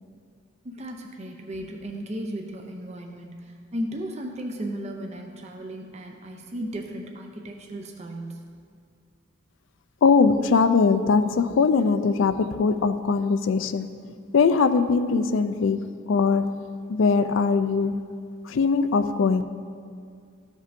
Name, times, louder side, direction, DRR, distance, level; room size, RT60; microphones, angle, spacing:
voice 1, 0.6-8.5, right 1 dB, 35° right, 2 dB, 0.6 m, -35 dB
voice 2, 10.0-13.9 14.3-16.6 16.9-18.0 18.5-19.4, left 4 dB, 75° left, 11 dB, 0.4 m, -21 dB
14.0 x 5.3 x 2.6 m, 2.2 s
head